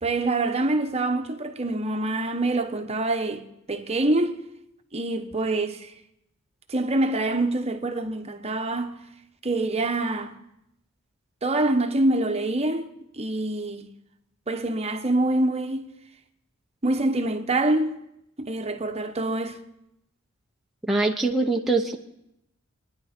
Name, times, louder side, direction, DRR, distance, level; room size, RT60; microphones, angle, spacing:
voice 1, 0.0-3.4 3.7-4.4 4.9-5.9 6.7-9.0 9.4-10.4 11.4-12.9 13.1-13.9 14.5-15.9 16.8-17.9 18.4-19.6, right 2 dB, 30° right, 1.0 m, -25 dB
voice 2, 20.9-22.0, right 3 dB, ahead, 0.8 m, -23 dB
26.0 x 10.5 x 4.3 m
head